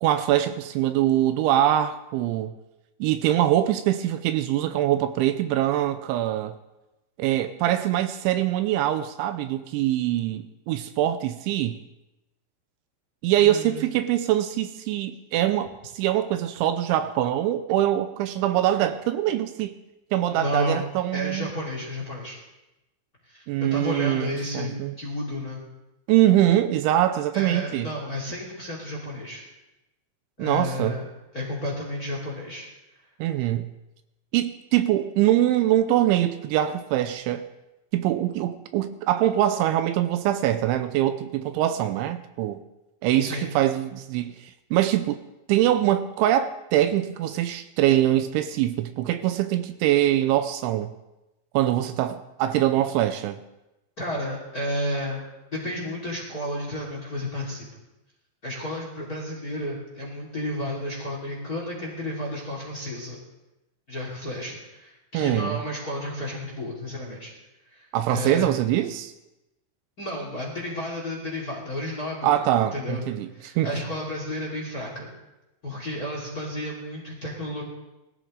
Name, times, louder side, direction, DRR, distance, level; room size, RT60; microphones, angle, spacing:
voice 1, 0.0-2.5 3.0-6.5 7.2-11.8 13.2-19.8 20.1-21.5 23.5-24.9 26.1-27.9 30.4-31.0 33.2-33.7 34.3-37.5 37.9-42.6 43.0-45.2 45.5-50.9 51.5-53.4 65.1-65.6 67.9-69.1 72.2-73.7, right 12 dB, 80° right, 2.9 m, -23 dB
voice 2, 13.4-13.9 20.3-20.8 21.1-22.4 23.3-25.6 27.3-29.4 30.4-31.0 31.3-32.7 43.2-43.5 54.0-55.2 55.5-57.7 58.4-63.2 63.9-67.3 67.7-68.5 70.0-72.3 72.7-73.0 73.3-75.1 75.6-77.6, left 1 dB, 25° left, 2.2 m, -32 dB
20.5 x 14.0 x 3.8 m
omnidirectional pair, 5.5 m